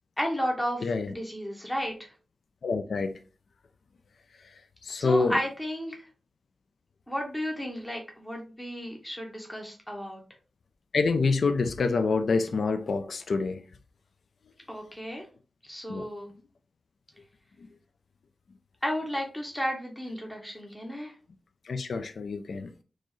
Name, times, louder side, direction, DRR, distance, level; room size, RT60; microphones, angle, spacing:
voice 1, 0.2-0.8 1.1-2.1 4.9-5.9 7.1-10.2 14.7-15.2 15.6-16.3 18.8-21.1, equal, 10° left, 0.9 m, -33 dB
voice 2, 0.8-1.1 2.6-3.2 4.8-5.4 10.9-13.6 15.9-16.1 21.7-22.8, left 4 dB, 75° left, 0.4 m, -27 dB
4.3 x 3.0 x 3.1 m
wide cardioid pair, 95°, 0 cm